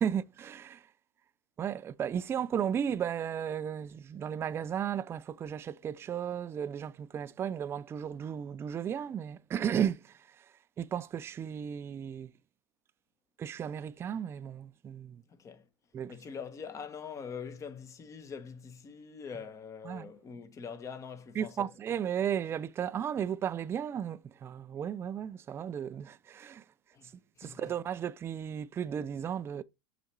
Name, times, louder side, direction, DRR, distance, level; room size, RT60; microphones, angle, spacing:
voice 1, 0.0-0.9 1.6-10.5 10.8-12.3 13.4-15.2 15.9-16.2 19.8-20.1 21.4-26.6 27.4-29.6, right 8 dB, 20° right, 0.3 m, -34 dB
voice 2, 15.3-15.7 16.1-21.7 26.9-27.7, left 6 dB, 25° left, 1.0 m, -44 dB
6.4 x 4.1 x 4.5 m
hypercardioid pair, 120°, 13 cm